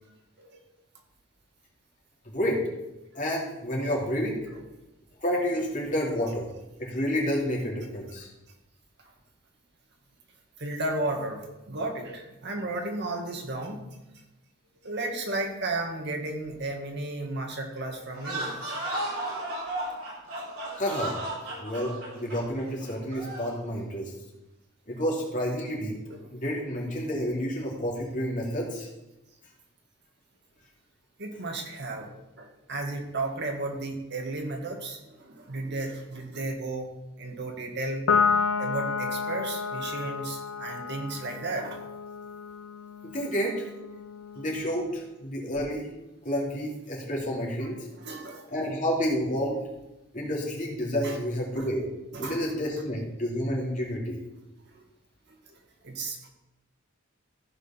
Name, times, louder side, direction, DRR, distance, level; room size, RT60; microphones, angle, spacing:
voice 1, 2.3-2.6 3.1-4.4 5.2-6.5 6.8-8.3 20.8-21.2 21.6-24.1 24.9-26.0 26.3-28.9 43.0-43.5 44.3-45.9 46.2-47.8 48.5-49.6 50.1-51.9 52.2-54.2, equal, 40° left, -2 dB, 2.8 m, -29 dB
voice 2, 10.6-13.8 14.8-18.6 21.5-22.2 26.1-26.3 31.2-32.1 32.4-38.1 38.6-41.8 47.6-48.5 51.0-51.2 51.5-51.7 52.1-52.5 54.7-54.9 55.5-56.3, right 2 dB, 55° right, 2 dB, 1.9 m, -34 dB
sound 1, 18.1-23.6, right 1 dB, 70° right, 4.1 m, -34 dB
Piano, 38.1-44.8, left 5 dB, 65° left, 0.6 m, -30 dB
15.0 x 5.1 x 5.8 m, 0.96 s
head